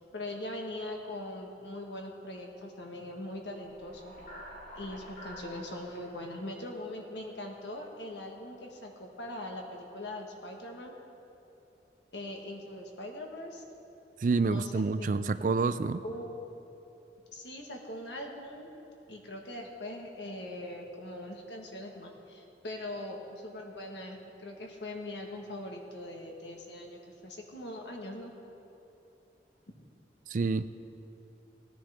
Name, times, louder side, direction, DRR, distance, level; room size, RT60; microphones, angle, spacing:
voice 1, 0.1-4.1 4.7-10.9 12.1-13.6 14.4-15.2 16.0-16.3 17.3-18.7 19.1-28.3 29.7-29.8, left 1 dB, 80° left, 1 dB, 1.5 m, -41 dB
sound 1, 3.6-7.8, equal, 55° left, 2.5 m, -49 dB
voice 2, 14.2-16.0 30.3-30.7, right 4 dB, 45° right, 13 dB, 0.3 m, -28 dB
17.5 x 10.5 x 3.5 m, 3.0 s
head